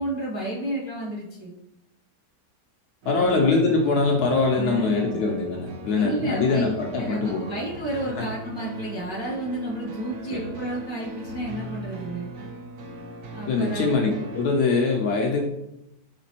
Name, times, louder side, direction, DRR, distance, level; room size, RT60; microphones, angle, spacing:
voice 1, 0.0-1.5 3.1-3.4 4.6-5.2 5.9-12.3 13.3-14.0, right 1 dB, 20° right, -6 dB, 0.7 m, -31 dB
sound 1, 3.0-14.5, right 2 dB, 65° right, 0.9 m, -39 dB
voice 2, 3.1-7.4 8.2-8.3 10.3-10.5 13.5-15.4, left 4 dB, 70° left, 1 dB, 1.0 m, -23 dB
5.0 x 3.2 x 2.8 m, 0.85 s
omnidirectional pair, 1.9 m